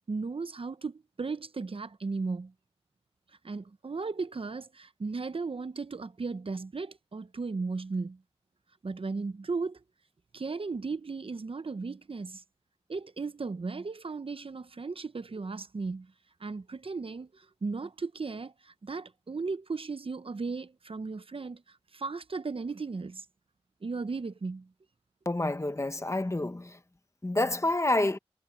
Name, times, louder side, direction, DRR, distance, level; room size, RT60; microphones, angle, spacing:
voice 1, 0.1-2.5 3.4-8.2 8.8-9.8 10.3-12.4 12.9-16.1 16.4-23.3 23.8-24.7, right 4 dB, 60° right, 0.8 m, -36 dB
voice 2, 25.2-26.8 27.2-28.2, left 2 dB, 25° left, 1.2 m, -28 dB
wide cardioid pair, 50°, 11 cm